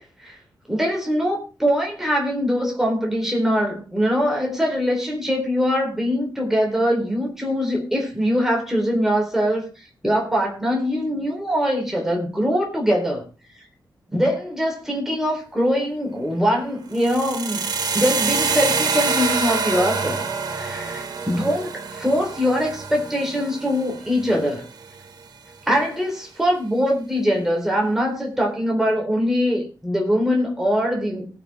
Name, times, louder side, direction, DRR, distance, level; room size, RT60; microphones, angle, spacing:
voice 1, 0.7-9.6 10.0-13.3 14.1-20.3 20.5-24.6 25.7-31.3, equal, 5° right, 0 dB, 4.0 m, -22 dB
sound 1, 16.9-25.0, right 5 dB, 60° right, 1.8 m, -26 dB
18.0 x 7.5 x 3.7 m, 0.33 s
wide cardioid pair, 165°, 8 cm